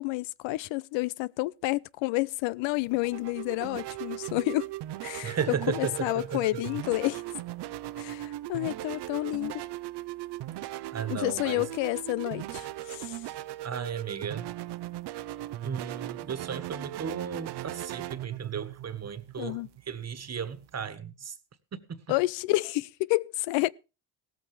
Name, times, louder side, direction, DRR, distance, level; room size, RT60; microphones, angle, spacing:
voice 1, 0.0-4.7 5.0-7.2 8.0-9.6 11.1-13.2 19.4-19.7 22.1-23.7, left 20 dB, 90° left, 0.6 m, -30 dB
sound 1, 2.6-20.9, right 14 dB, 65° right, 0.8 m, -38 dB
voice 2, 5.2-6.4 10.9-11.7 13.6-14.5 15.6-21.4 21.9-22.0, right 7 dB, 35° right, 1.5 m, -35 dB
16.5 x 14.0 x 3.3 m
cardioid pair, 95°, 44 cm